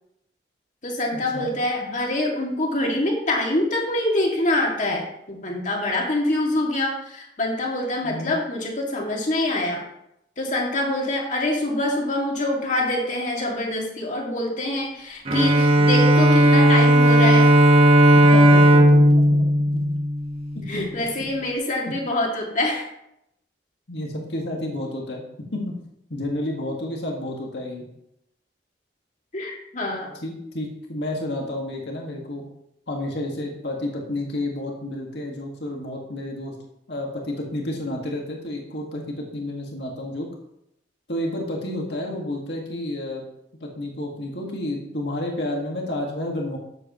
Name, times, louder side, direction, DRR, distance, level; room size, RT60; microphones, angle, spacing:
voice 1, 0.8-9.8 10.4-17.5 20.7-22.8 29.3-30.1, left 1 dB, 45° left, -1 dB, 2.3 m, -25 dB
Bowed string instrument, 15.3-20.7, equal, 35° right, 1.1 m, -15 dB
voice 2, 18.1-19.5 19.7-19.9 20.5-20.9 23.9-25.2 25.5-25.7 26.1-27.8 30.2-32.4 32.9-36.5 36.9-40.3 41.1-43.2 43.6-46.6, left 1 dB, 70° left, -1 dB, 1.9 m, -30 dB
13.0 x 8.0 x 3.1 m, 0.79 s
head